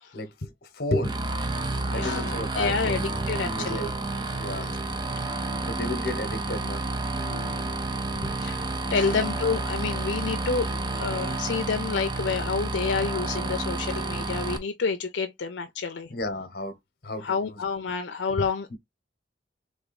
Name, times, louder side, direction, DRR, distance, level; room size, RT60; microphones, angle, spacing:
voice 1, 0.1-1.2 1.9-3.0 3.4-3.9 4.4-4.7 5.6-7.1 8.1-8.4 9.0-9.2 16.1-16.8 17.0-17.5 18.3-18.4 18.7-18.8, left 1 dB, 55° left, 1.0 m, -32 dB
sound 1, 1.0-14.6, right 2 dB, 25° right, 0.6 m, -30 dB
voice 2, 1.7-3.0 3.3-3.9 4.3-4.8 5.2-5.5 7.1-7.6 8.4-16.1 17.2-18.8, left 5 dB, 80° left, 0.5 m, -29 dB
3.7 x 3.4 x 4.0 m
head